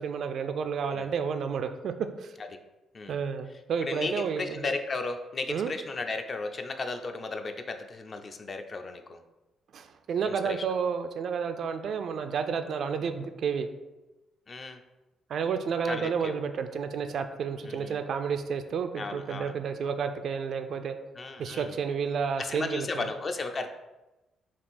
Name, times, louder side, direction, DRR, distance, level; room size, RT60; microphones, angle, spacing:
voice 1, 0.0-1.9 2.2-2.3 3.1-4.7 5.5-5.7 9.7-13.7 15.3-20.9 21.4-23.1, right 6 dB, 65° right, 8 dB, 0.3 m, -31 dB
voice 2, 3.8-9.2 10.2-10.6 14.5-14.8 15.8-16.3 17.7-18.0 19.0-19.5 21.2-21.7 22.4-23.7, left 3 dB, 40° left, 6 dB, 0.4 m, -35 dB
3.6 x 2.5 x 4.1 m, 1.0 s
cardioid pair, 90°, 0 cm